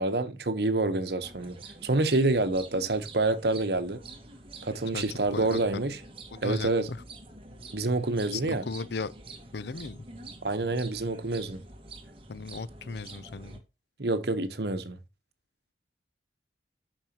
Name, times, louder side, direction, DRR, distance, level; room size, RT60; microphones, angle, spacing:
voice 1, 0.0-1.6 1.8-4.0 4.6-6.0 6.4-6.9 7.7-8.6 10.4-11.6 14.0-15.0, right 2 dB, 65° right, 1.1 m, -27 dB
sound 1, 1.2-13.6, right 2 dB, 30° right, 1.6 m, -47 dB
voice 2, 4.9-5.6 6.3-7.0 8.3-9.1 9.5-10.0 12.3-13.6, left 4 dB, 70° left, 0.6 m, -36 dB
9.0 x 6.3 x 3.0 m
head